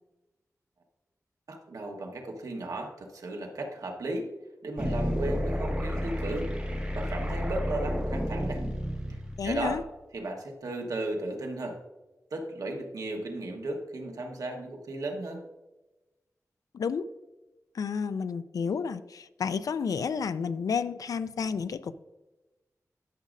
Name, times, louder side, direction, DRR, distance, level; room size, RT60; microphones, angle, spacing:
voice 1, 1.5-4.3 4.6-6.5 6.9-8.6 9.4-9.8 10.1-11.8 12.3-15.4, right 2 dB, 80° right, 2 dB, 1.2 m, -35 dB
sound 1, 4.8-9.8, equal, 15° right, 2.3 m, -31 dB
voice 2, 9.4-9.8 16.7-17.1 17.7-21.9, left 6 dB, 85° left, 14 dB, 0.3 m, -31 dB
12.0 x 6.2 x 2.5 m, 1.1 s
wide cardioid pair, 100°, 6 cm